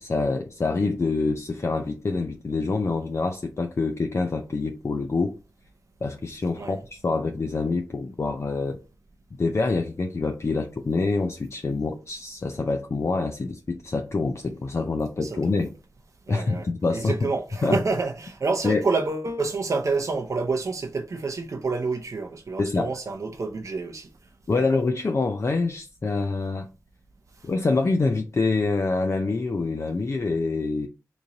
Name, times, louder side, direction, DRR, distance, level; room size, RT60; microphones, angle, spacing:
voice 1, 0.0-5.4 6.0-8.8 9.4-15.7 16.3-17.3 17.6-17.8 18.6-18.8 22.6-22.9 24.5-26.7 27.4-30.9, left 3 dB, 45° left, 0.4 m, -26 dB
voice 2, 15.2-15.6 16.3-24.1 24.5-24.6 27.4-27.5, right 3 dB, 55° right, 0.5 m, -28 dB
3.0 x 2.6 x 3.7 m
cardioid pair, 55°, 7 cm